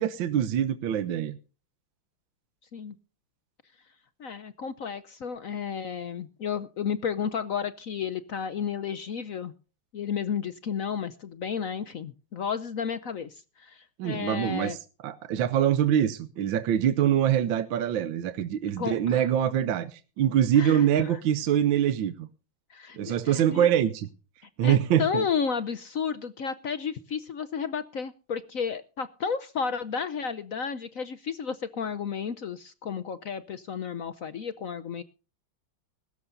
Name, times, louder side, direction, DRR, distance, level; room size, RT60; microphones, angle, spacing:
voice 1, 0.0-1.4 14.0-22.3 23.0-24.1 24.6-25.2, right 10 dB, 70° right, 1.5 m, -24 dB
voice 2, 4.2-9.5 9.9-14.8 18.8-19.3 20.6-21.2 22.7-23.7 24.6-35.0, left 6 dB, 60° left, 0.9 m, -32 dB
21.5 x 13.0 x 2.6 m
omnidirectional pair, 2.3 m